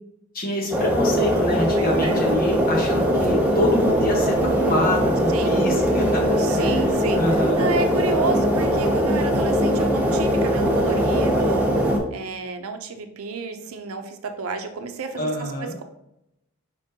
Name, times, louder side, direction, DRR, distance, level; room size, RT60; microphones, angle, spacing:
voice 1, 0.3-6.8 7.1-7.7 15.2-15.8, left 1 dB, 40° left, 0 dB, 1.1 m, -26 dB
sound 1, 0.7-12.0, equal, 5° right, 0.7 m, -21 dB
voice 2, 1.7-2.2 5.3-5.6 6.4-7.2 7.6-11.7 12.1-15.8, right 3 dB, 85° right, 7 dB, 0.6 m, -30 dB
5.2 x 3.6 x 2.8 m, 0.81 s
head